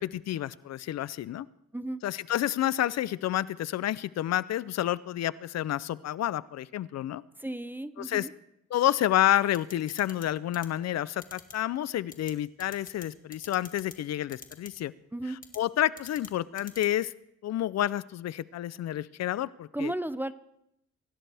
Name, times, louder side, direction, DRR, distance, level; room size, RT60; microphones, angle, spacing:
voice 1, 0.0-1.5 2.0-7.2 8.0-8.3 8.7-14.9 15.6-17.1 17.4-19.9, left 12 dB, 60° left, 18 dB, 0.5 m, -29 dB
voice 2, 7.4-8.3 15.1-15.4 19.7-20.3, right 1 dB, 5° right, 14 dB, 0.6 m, -34 dB
sound 1, 9.5-10.3 10.5-10.7 11.2-11.5 12.1-12.3 12.6-13.1 13.3-14.0 14.3-14.7 15.4-15.6 16.0-16.3 16.6-16.9, left 4 dB, 30° left, 2.0 m, -44 dB
24.5 x 16.5 x 3.5 m, 0.79 s
cardioid pair, 105°, 29 cm